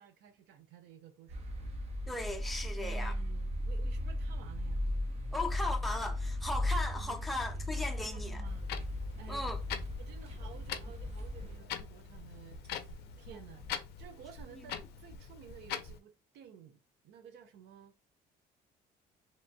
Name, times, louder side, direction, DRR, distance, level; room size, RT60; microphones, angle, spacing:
voice 1, 0.0-1.7 2.8-4.9 7.0-7.2 7.9-8.7 9.2-9.5 10.0-13.7 14.0-17.9, right 8 dB, 85° right, 0.6 m, -54 dB
sound 1, 1.3-11.6, left 1 dB, 40° right, 0.7 m, -36 dB
voice 2, 2.1-3.1 5.3-8.4 9.3-9.6, left 2 dB, ahead, 0.5 m, -37 dB
sound 2, 7.9-13.9, equal, 70° right, 1.7 m, -59 dB
Clock, 8.4-16.0, left 8 dB, 75° left, 0.4 m, -44 dB
3.0 x 2.2 x 2.6 m
cardioid pair, 110°, 17 cm